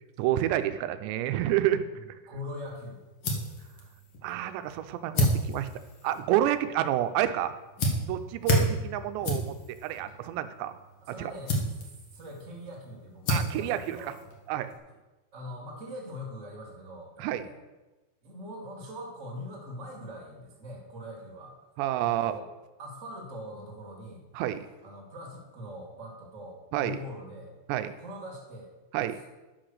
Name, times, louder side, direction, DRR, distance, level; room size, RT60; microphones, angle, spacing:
voice 1, 0.2-1.9 4.2-5.7 6.0-7.5 8.1-9.6 9.8-10.7 11.2-11.3 13.3-14.1 14.5-14.7 17.2-17.4 21.8-22.4 24.4-24.6 26.7-27.0 27.7-27.9 28.9-29.2, right 12 dB, 85° right, 10 dB, 2.8 m, -29 dB
voice 2, 1.9-3.0 11.0-11.6 12.1-14.2 14.6-14.7 15.3-17.6 18.2-21.5 22.0-22.5 22.8-24.2 24.8-27.5 28.0-29.0, left 1 dB, 25° right, -1 dB, 1.8 m, -42 dB
sound 1, 2.6-14.8, left 1 dB, 60° left, 1.3 m, -33 dB
10.5 x 6.0 x 6.5 m, 1.1 s
omnidirectional pair, 5.0 m